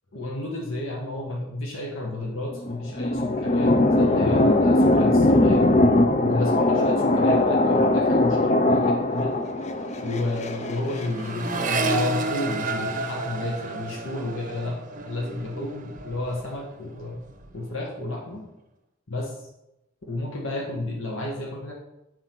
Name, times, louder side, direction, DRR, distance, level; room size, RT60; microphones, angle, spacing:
voice 1, 0.1-5.6 6.2-9.3 10.0-17.2 17.5-18.4 19.1-19.5 20.1-21.7, left 2 dB, 75° left, -1 dB, 1.4 m, -31 dB
sound 1, 2.5-11.1, left 2 dB, 35° left, 0.4 m, -20 dB
Accelerating revving vroom, 8.6-8.8 9.1-16.6 16.9-17.6, right 2 dB, 40° right, 0.7 m, -31 dB
7.4 x 4.5 x 5.9 m, 0.89 s
head